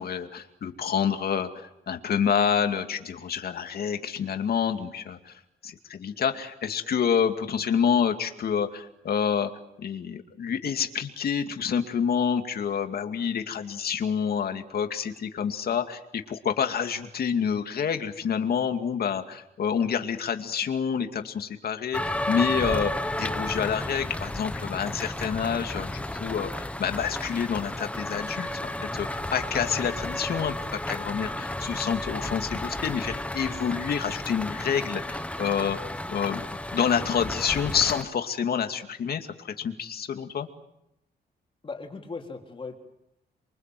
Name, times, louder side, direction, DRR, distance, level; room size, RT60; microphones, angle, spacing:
voice 1, 0.0-9.5 9.8-22.9 23.2-35.8 36.1-36.4 36.7-40.5, left 7 dB, 60° left, 6 dB, 2.4 m, -28 dB
sound 1, 21.9-38.0, left 1 dB, 5° left, 1.1 m, -32 dB
voice 2, 41.6-42.8, left 4 dB, 30° left, 2 dB, 3.6 m, -38 dB
28.5 x 24.5 x 7.7 m, 0.84 s
wide cardioid pair, 145°, 18 cm